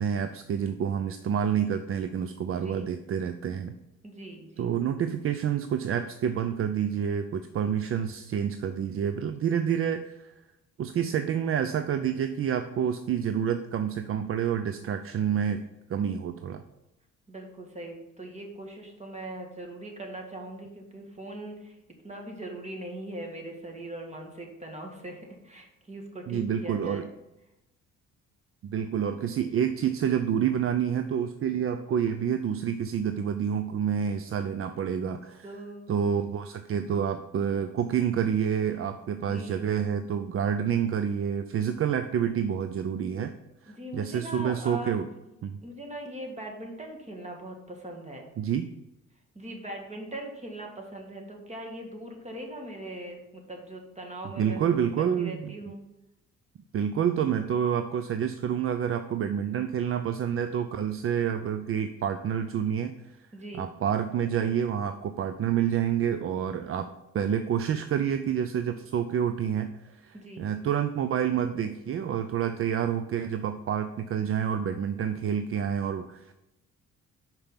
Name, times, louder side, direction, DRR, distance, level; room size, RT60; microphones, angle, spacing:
voice 1, 0.0-3.7 4.6-10.3 10.8-15.6 15.9-16.6 26.3-27.0 28.6-35.5 35.9-43.3 43.6-45.1 45.4-45.6 48.4-48.7 54.4-55.5 56.7-62.9 63.5-76.3, right 8 dB, 45° right, 9 dB, 0.5 m, -28 dB
voice 2, 4.0-4.7 17.3-21.8 22.0-27.0 35.4-35.9 39.3-39.7 43.7-45.3 45.6-48.2 49.4-54.8 55.2-55.8 63.3-63.7 70.1-70.5, right 1 dB, 20° right, 2 dB, 1.8 m, -40 dB
6.0 x 5.1 x 5.7 m, 0.93 s
cardioid pair, 90°, 30 cm